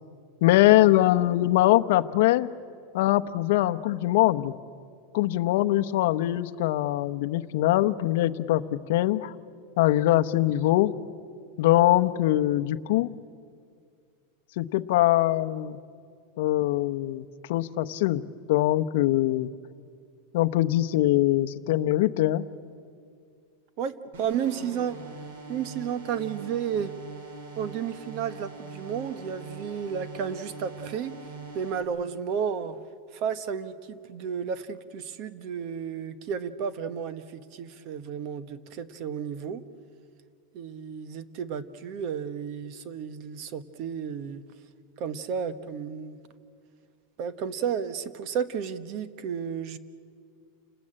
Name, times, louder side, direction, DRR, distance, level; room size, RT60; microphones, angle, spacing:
voice 1, 0.4-2.5 2.9-4.5 5.1-8.6 8.9-9.3 9.8-10.9 11.6-13.1 14.6-15.8 16.4-18.2 18.5-19.5 20.3-22.4, left 15 dB, 60° left, 10 dB, 0.9 m, -22 dB
voice 2, 23.8-25.0 25.5-26.9 27.6-31.1 31.5-32.8 33.1-39.6 40.5-44.4 45.0-46.2 47.2-49.8, right 7 dB, 40° right, 13 dB, 1.0 m, -32 dB
sound 1, 24.1-31.8, right 3 dB, 85° right, 4.4 m, -42 dB
29.0 x 20.0 x 8.8 m, 2.2 s
supercardioid pair, 165°, 0 cm